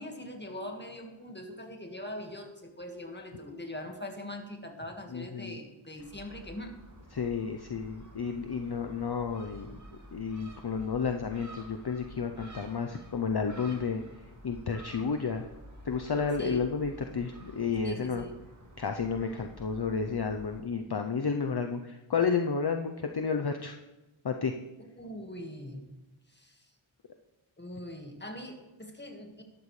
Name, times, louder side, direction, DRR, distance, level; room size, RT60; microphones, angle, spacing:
voice 1, 0.0-6.7 16.4-16.7 17.8-18.4 25.0-25.8 26.3-26.7 27.6-29.4, left 1 dB, 20° left, 3 dB, 1.7 m, -42 dB
voice 2, 5.1-5.6 7.1-9.8 10.1-15.5 15.8-18.2 18.8-23.8 24.2-24.6, left 5 dB, 50° left, 5 dB, 0.7 m, -31 dB
Gull seagull, 6.0-20.6, right 1 dB, 35° right, 2.0 m, -50 dB
12.5 x 12.5 x 3.2 m, 1.0 s
wide cardioid pair, 45°, 49 cm